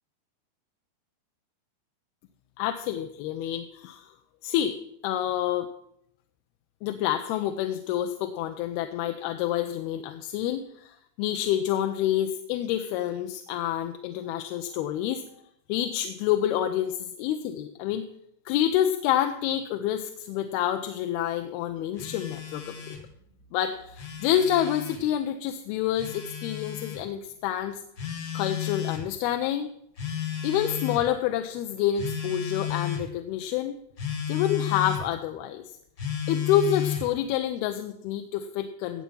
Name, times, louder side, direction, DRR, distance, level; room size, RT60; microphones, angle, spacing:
voice 1, 2.6-4.1 4.4-4.7 5.0-5.7 6.8-15.2 15.7-18.0 18.5-22.7 23.5-27.8 28.3-29.7 30.4-33.8 34.3-35.6 36.3-39.0, left 11 dB, 85° left, 6 dB, 2.7 m, -28 dB
Telephone, 22.0-23.1 23.8-25.0 26.0-27.0 28.0-29.1 30.0-31.1 32.0-33.1 34.0-35.1 36.0-37.1, left 9 dB, 50° left, 1.3 m, -33 dB
17.5 x 7.5 x 5.5 m, 0.75 s
omnidirectional pair, 4.4 m